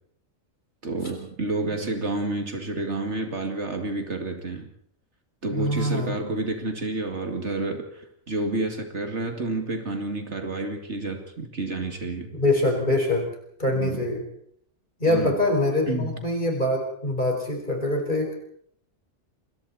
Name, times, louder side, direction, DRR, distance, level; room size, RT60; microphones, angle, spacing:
voice 1, 0.8-4.7 5.4-12.3 13.7-14.0 15.1-15.4 15.9-16.2, right 2 dB, 60° right, 5 dB, 2.6 m, -29 dB
voice 2, 5.5-6.1 12.3-13.3 13.6-14.2 15.0-18.4, left 1 dB, 35° left, 1 dB, 5.1 m, -24 dB
27.5 x 22.5 x 4.2 m, 0.65 s
omnidirectional pair, 1.3 m